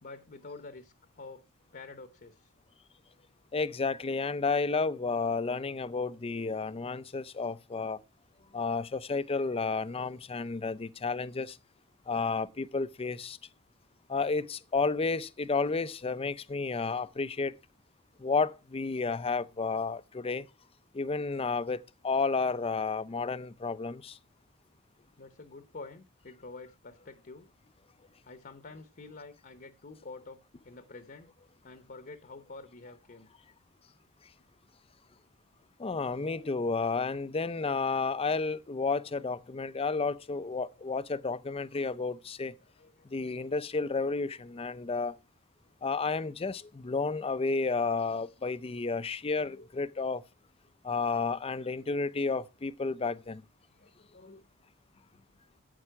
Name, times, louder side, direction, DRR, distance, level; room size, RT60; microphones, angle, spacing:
voice 1, 0.0-1.4 1.7-2.5 8.4-8.6 25.2-27.5 28.2-30.4 30.6-31.3 31.6-33.3 42.6-43.3 49.5-49.7 53.8-54.5 55.1-55.2, left 3 dB, 40° left, 0.9 m, -48 dB
voice 2, 3.5-8.0 8.5-11.6 12.1-13.4 14.1-17.5 18.2-20.5 20.9-24.2 35.8-42.5 43.1-45.2 45.8-50.2 50.8-53.4, left 4 dB, 25° left, 0.5 m, -31 dB
11.5 x 8.5 x 4.7 m
head